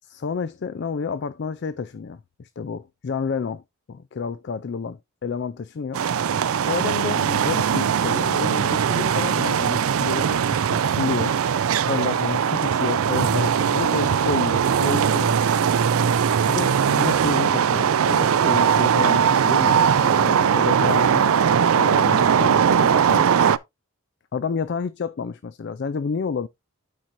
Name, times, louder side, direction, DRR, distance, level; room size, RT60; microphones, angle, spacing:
voice 1, 0.2-3.6 3.9-6.0 6.7-11.4 11.9-15.4 16.5-21.4 21.7-23.3 24.3-26.5, left 5 dB, 50° left, 0.3 m, -30 dB
sound 1, 5.9-23.6, right 7 dB, 70° right, 0.4 m, -20 dB
13.0 x 4.5 x 2.6 m
head